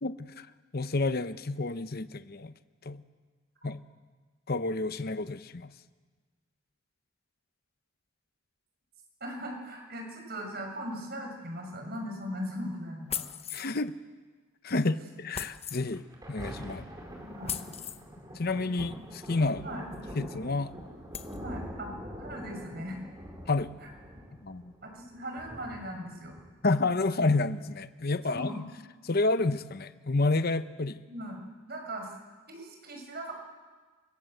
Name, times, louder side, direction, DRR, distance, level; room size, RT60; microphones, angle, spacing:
voice 1, 0.0-0.5 0.7-2.5 2.8-3.0 3.6-3.8 4.5-5.7 13.5-13.9 14.6-16.8 18.3-19.6 20.1-20.7 23.4-23.7 24.4-24.7 26.6-28.6 29.0-31.0, left 3 dB, 50° left, 12 dB, 0.8 m, -29 dB
voice 2, 9.2-13.3 17.2-17.7 19.6-19.8 21.4-21.9 22.2-23.0 24.8-26.4 27.0-27.2 28.3-28.6 31.1-31.4 31.7-32.1 32.5-33.3, equal, 50° right, 3 dB, 6.5 m, -39 dB
sound 1, 13.1-13.8 15.3-15.8 17.5-18.0 19.9-20.0 20.5-20.6 21.1-21.4, left 8 dB, 30° left, 1.0 m, -37 dB
Thunder, 15.9-26.9 27.5-27.6, equal, 20° right, 4.6 m, -44 dB
29.5 x 25.0 x 7.9 m, 1.4 s
head